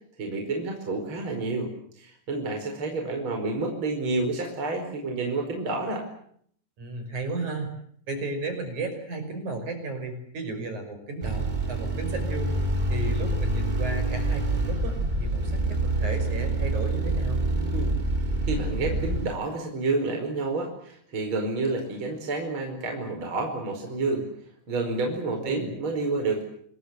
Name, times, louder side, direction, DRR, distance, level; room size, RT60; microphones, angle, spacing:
voice 1, 0.2-1.7 2.0-6.1 17.7-18.0 18.4-24.2 24.7-26.4, right 3 dB, 30° right, 3 dB, 5.5 m, -29 dB
voice 2, 6.8-7.7 8.1-12.5 12.9-17.4 25.4-25.9, right 3 dB, 45° right, 6 dB, 6.9 m, -34 dB
sound 1, 11.2-19.3, right 2 dB, 15° right, 2.4 m, -26 dB
28.5 x 21.5 x 8.2 m, 0.65 s
omnidirectional pair, 4.9 m